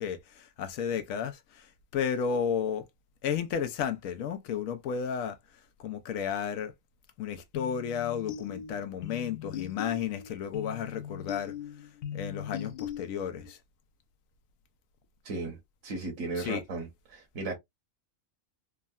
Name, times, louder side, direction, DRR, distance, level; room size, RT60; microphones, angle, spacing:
voice 1, 0.0-1.7 1.9-2.9 3.2-5.4 5.8-6.7 7.2-11.5 12.1-13.6 16.4-16.6, left 7 dB, 90° left, 1.0 m, -33 dB
sound 1, 7.5-13.5, left 9 dB, 65° left, 0.6 m, -40 dB
voice 2, 15.2-17.6, right 3 dB, 65° right, 1.2 m, -36 dB
3.6 x 2.1 x 2.3 m
omnidirectional pair, 1.4 m